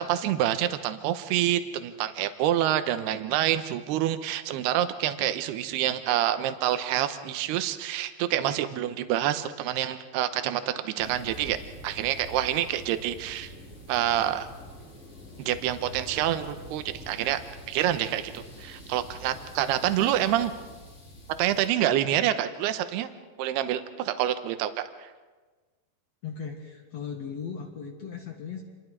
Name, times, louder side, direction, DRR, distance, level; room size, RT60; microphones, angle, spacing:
voice 1, 0.0-11.6 11.8-13.5 13.9-14.5 15.4-17.4 17.7-20.5 21.4-23.1 23.4-24.8, right 12 dB, 75° right, 10 dB, 2.9 m, -27 dB
sound 1, 11.0-21.7, equal, 25° left, 1.7 m, -46 dB
voice 2, 26.2-28.6, left 6 dB, 50° left, 2 dB, 2.2 m, -37 dB
28.0 x 21.5 x 4.7 m, 1.3 s
omnidirectional pair, 4.9 m